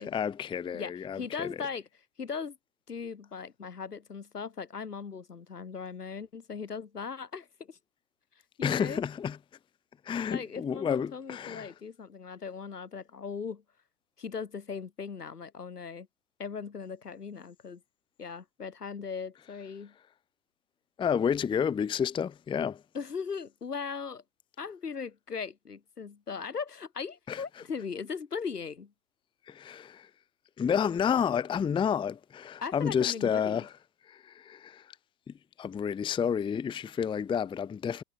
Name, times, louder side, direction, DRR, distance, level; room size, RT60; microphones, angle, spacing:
voice 1, 0.1-1.5 8.6-9.4 10.1-11.7 21.0-22.8 27.3-27.4 29.5-30.1 30.6-33.7 34.1-34.8 35.6-38.0, left 7 dB, 10° left, 0.7 m, -30 dB
voice 2, 0.7-1.9 2.2-2.6 2.9-7.8 8.6-9.0 10.3-13.6 14.2-16.1 16.4-17.8 18.2-19.9 22.9-24.2 24.6-28.9 32.6-33.7, left 5 dB, 80° left, 7.3 m, -38 dB
figure-of-eight pair, 100°, 46 cm